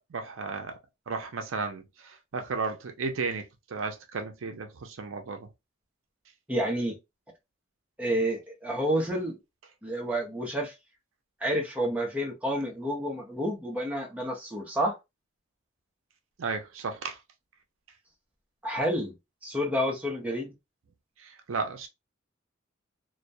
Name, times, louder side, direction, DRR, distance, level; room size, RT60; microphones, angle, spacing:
voice 1, 0.1-0.8 1.1-5.5 16.4-17.2 21.2-21.9, right 4 dB, 70° right, 0.5 m, -34 dB
voice 2, 6.5-7.0 8.0-9.4 9.8-10.7 11.4-14.9 18.6-19.1 19.4-20.5, equal, 5° right, 0.6 m, -29 dB
2.2 x 2.1 x 2.6 m
head